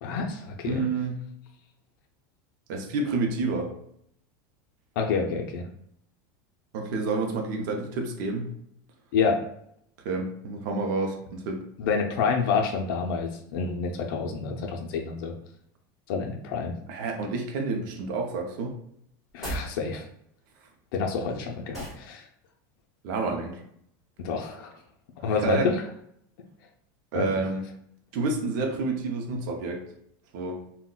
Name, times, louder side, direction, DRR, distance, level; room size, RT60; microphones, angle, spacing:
voice 1, 0.0-0.8 5.0-5.7 9.1-9.4 11.8-15.3 16.1-16.7 19.3-20.1 20.9-22.2 24.2-24.7 25.2-25.8 27.1-27.3, left 5 dB, 70° left, 1 dB, 0.5 m, -28 dB
voice 2, 0.7-1.2 2.7-3.7 6.7-8.5 10.0-11.6 16.9-18.7 23.0-23.6 25.2-25.7 27.1-27.6 28.1-29.8 30.3-30.6, right 3 dB, 65° right, 2 dB, 0.5 m, -29 dB
sound 1, 19.3-19.7 21.7-22.1, right 1 dB, 5° right, 1.4 m, -34 dB
3.7 x 2.2 x 2.2 m, 0.70 s
supercardioid pair, 155°, 11 cm